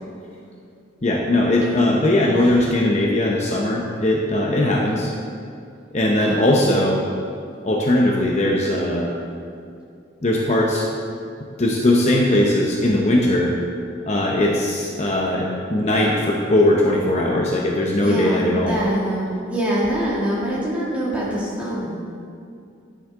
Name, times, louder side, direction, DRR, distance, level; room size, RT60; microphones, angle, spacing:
voice 1, 1.0-5.1 5.9-7.0 7.6-9.1 10.2-10.9 11.6-13.5 14.0-18.8, left 1 dB, 35° left, -2 dB, 0.8 m, -19 dB
voice 2, 6.2-6.8 18.0-22.0, right 1 dB, 5° right, -7 dB, 2.2 m, -25 dB
10.0 x 9.7 x 3.7 m, 2.4 s
head